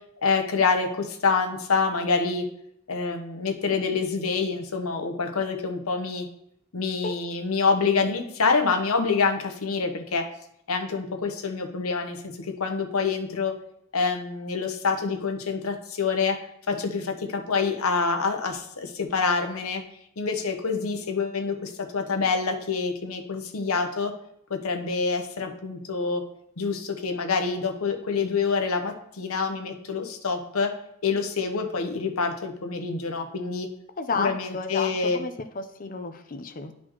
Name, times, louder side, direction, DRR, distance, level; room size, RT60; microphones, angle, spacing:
voice 1, 0.2-2.4 2.9-6.3 6.7-10.3 10.7-13.5 13.9-16.4 16.7-19.8 20.2-24.1 24.5-26.2 26.6-30.7 31.0-33.7 34.2-35.2, left 4 dB, 85° left, 5 dB, 0.9 m, -26 dB
voice 2, 34.0-36.7, left 4 dB, 40° left, 7 dB, 0.6 m, -32 dB
11.5 x 4.2 x 3.0 m, 0.75 s
head